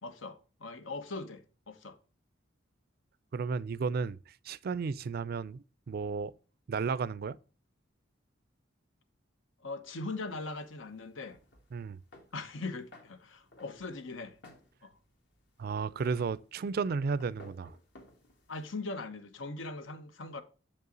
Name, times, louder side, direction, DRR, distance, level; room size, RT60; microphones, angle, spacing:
voice 1, 0.0-2.0 9.6-11.4 12.3-14.4 14.8-14.9 18.5-20.4, left 3 dB, 85° left, 0.9 m, -40 dB
voice 2, 3.3-4.2 4.4-6.3 6.7-7.4 11.7-12.0 15.6-17.7, right 5 dB, 50° right, 0.4 m, -33 dB
sound 1, 10.3-18.7, left 1 dB, 65° left, 1.8 m, -59 dB
7.2 x 5.5 x 3.8 m
head